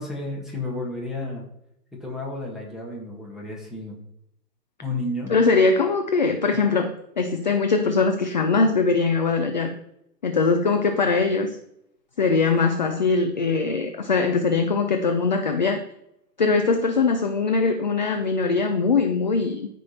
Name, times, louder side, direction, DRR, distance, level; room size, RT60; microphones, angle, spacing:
voice 1, 0.0-1.4 2.0-4.0 4.8-5.3, left 2 dB, ahead, -2 dB, 1.6 m, -31 dB
voice 2, 5.3-9.7 10.2-11.6 12.2-15.8 16.4-19.7, left 4 dB, 30° left, 6 dB, 0.5 m, -21 dB
13.5 x 5.3 x 4.2 m, 0.78 s
figure-of-eight pair, 140°, 49 cm